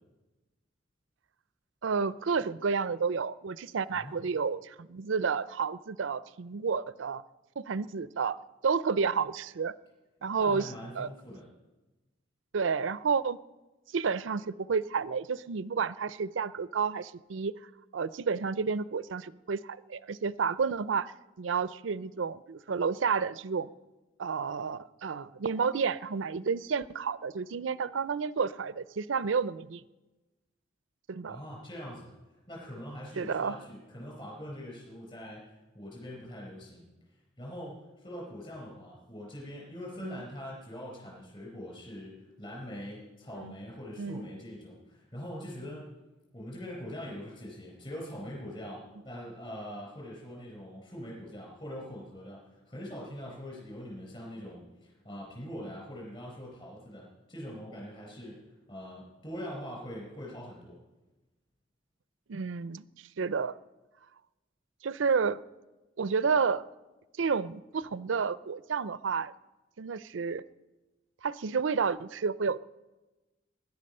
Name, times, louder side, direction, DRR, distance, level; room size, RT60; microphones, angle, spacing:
voice 1, 1.8-7.2 7.6-8.4 8.6-9.7 10.2-11.1 12.5-13.4 13.9-17.5 17.9-23.7 24.2-29.8 31.1-31.4 33.2-33.6 40.0-40.2 43.4-43.5 44.0-44.2 62.3-62.9 63.2-63.6 64.8-65.4 66.0-66.6 67.2-69.3 69.8-70.4 71.2-72.6, right 5 dB, 85° right, 17 dB, 0.5 m, -30 dB
voice 2, 10.4-11.4 31.3-32.1 32.5-36.9 37.4-45.9 46.3-60.8, equal, 25° left, -3 dB, 4.7 m, -43 dB
20.5 x 11.0 x 5.5 m, 1.1 s
head